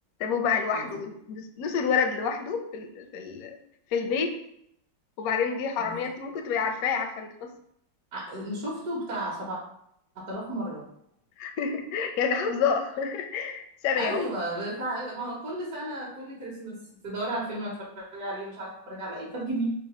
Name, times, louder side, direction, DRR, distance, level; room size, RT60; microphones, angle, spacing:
voice 1, 0.2-3.6 3.9-4.4 5.2-7.5 11.4-14.2, left 6 dB, 70° left, 5 dB, 0.9 m, -28 dB
voice 2, 8.1-9.6 10.1-10.9 14.0-16.8 17.0-19.7, right 1 dB, 60° right, -7 dB, 1.4 m, -33 dB
3.9 x 2.1 x 4.2 m, 0.73 s
omnidirectional pair, 2.0 m